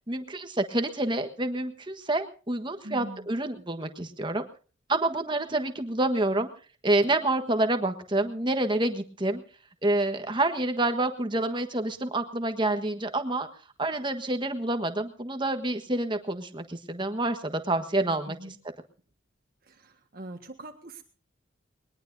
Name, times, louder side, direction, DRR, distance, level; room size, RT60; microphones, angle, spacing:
voice 1, 0.1-4.4 4.9-6.5 6.8-9.4 9.8-13.5 13.8-18.5, right 2 dB, 25° right, 7 dB, 1.4 m, -28 dB
voice 2, 2.8-3.3 18.3-18.6 19.7-21.0, right 1 dB, 50° right, 4 dB, 1.6 m, -42 dB
21.0 x 20.0 x 2.7 m, 0.38 s
head